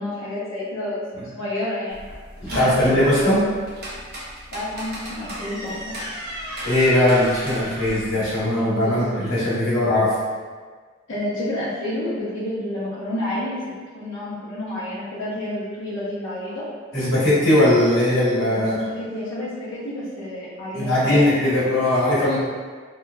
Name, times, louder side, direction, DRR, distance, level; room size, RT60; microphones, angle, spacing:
voice 1, 0.0-1.0 1.3-2.0 2.5-2.9 4.5-5.9 8.8-8.9 11.1-13.6 13.9-16.6 18.5-21.5, left 1 dB, 55° left, -13 dB, 0.7 m, -29 dB
sound 1, 1.9-8.4, equal, 45° right, 0.6 m, -34 dB
voice 2, 2.4-3.4 6.6-10.1 16.9-18.8 20.7-22.4, left 1 dB, 75° left, -10 dB, 1.1 m, -19 dB
2.8 x 2.2 x 2.3 m, 1.5 s
head